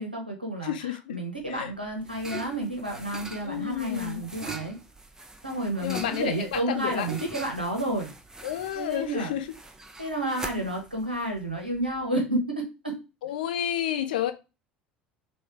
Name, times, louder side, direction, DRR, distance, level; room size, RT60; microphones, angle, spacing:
voice 1, 0.0-4.8 5.4-8.1 8.7-9.3 10.0-13.0, right 1 dB, 85° right, 1.2 m, -31 dB
voice 2, 0.6-1.2 1.5-1.7 3.4-4.2 5.8-7.1 8.4-9.5 13.2-14.3, left 11 dB, 65° left, 0.6 m, -30 dB
sound 1, 1.4-12.0, right 2 dB, 10° right, 0.7 m, -43 dB
5.6 x 2.6 x 3.3 m
figure-of-eight pair, 65°, 5 cm